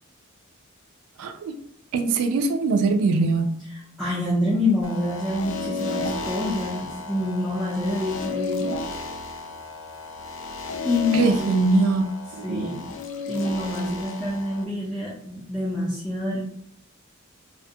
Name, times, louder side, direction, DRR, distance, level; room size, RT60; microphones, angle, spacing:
voice 1, 1.2-1.5 1.9-3.6 11.1-12.0 12.3-12.7, right 3 dB, 90° right, 6 dB, 0.3 m, -22 dB
voice 2, 4.0-8.8 10.8-11.6 12.4-12.8 13.3-16.4, left 1 dB, ahead, -8 dB, 0.4 m, -26 dB
sound 1, 4.8-14.6, left 3 dB, 65° left, 0.4 m, -33 dB
2.5 x 2.2 x 2.7 m, 0.69 s
head